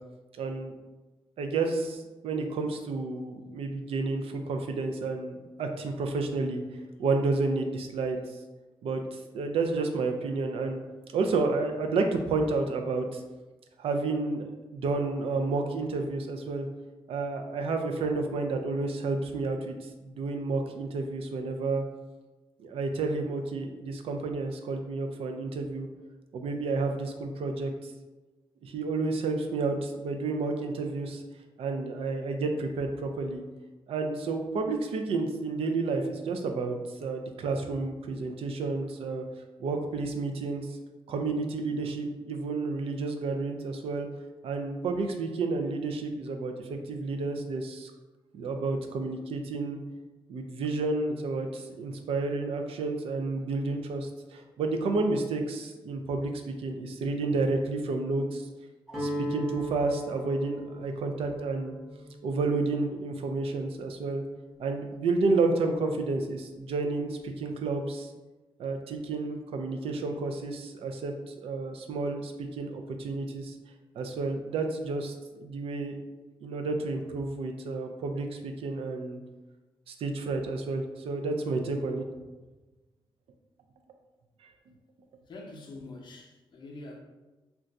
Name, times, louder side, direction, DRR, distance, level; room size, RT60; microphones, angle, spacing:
voice 1, 0.4-0.7 1.4-6.6 7.0-8.2 8.8-10.8 11.1-13.2 13.8-16.7 17.1-19.7 20.0-21.8 22.6-25.9 26.3-27.7 28.6-31.2 31.6-33.4 33.9-39.2 39.6-40.7 41.1-44.1 44.4-47.9 48.3-49.8 50.3-58.5 59.0-61.7 62.2-64.2 64.6-68.1 68.6-73.5 74.0-75.1 75.4-76.0 76.4-79.2 79.9-82.0, right 3 dB, 80° right, 4 dB, 0.4 m, -30 dB
Guitar, 58.9-64.9, right 1 dB, 5° right, 0.7 m, -39 dB
voice 2, 85.3-87.0, left 2 dB, 55° left, 0 dB, 0.6 m, -45 dB
2.5 x 2.2 x 4.0 m, 1.2 s
wide cardioid pair, 140°, 10 cm